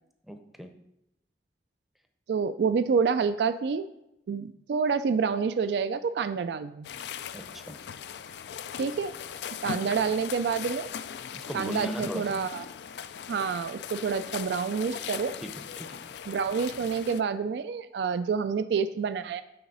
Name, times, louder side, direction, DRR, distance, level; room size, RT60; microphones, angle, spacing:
voice 1, 0.2-0.7 7.3-7.8 11.3-12.4 15.4-16.0, equal, ahead, 6 dB, 0.6 m, -37 dB
voice 2, 2.3-3.9 4.3-6.9 8.8-9.1 9.6-10.9 11.5-12.6 13.3-15.4 16.3-19.4, right 5 dB, 70° right, 12 dB, 0.3 m, -28 dB
sound 1, 6.8-17.2, left 8 dB, 75° left, 0.4 m, -39 dB
8.6 x 4.0 x 5.3 m, 0.84 s
head